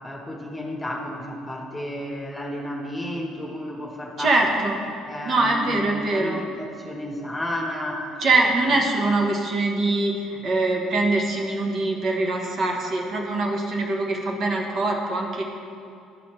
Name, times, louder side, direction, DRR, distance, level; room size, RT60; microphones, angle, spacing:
voice 1, 0.0-4.4 5.1-8.4 8.7-8.9, left 1 dB, 10° left, 0 dB, 1.2 m, -32 dB
voice 2, 4.2-4.8 5.2-6.4 8.2-15.4, right 2 dB, 50° right, 1 dB, 1.1 m, -23 dB
12.0 x 4.1 x 3.2 m, 2.5 s
supercardioid pair, 80°, 0 cm